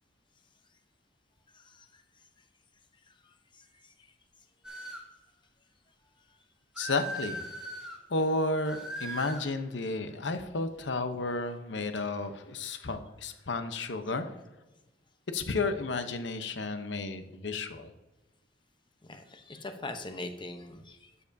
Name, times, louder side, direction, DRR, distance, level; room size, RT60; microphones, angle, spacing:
voice 1, 1.5-2.0 19.1-21.1, left 2 dB, 25° left, 6 dB, 0.8 m, -42 dB
sound 1, 4.6-5.1 6.7-8.0 8.7-9.5, right 1 dB, 5° right, 1.6 m, -39 dB
voice 2, 6.8-7.4 8.1-14.3 15.3-17.9, left 3 dB, 80° left, 8 dB, 0.8 m, -32 dB
12.5 x 6.9 x 2.7 m, 1.1 s
head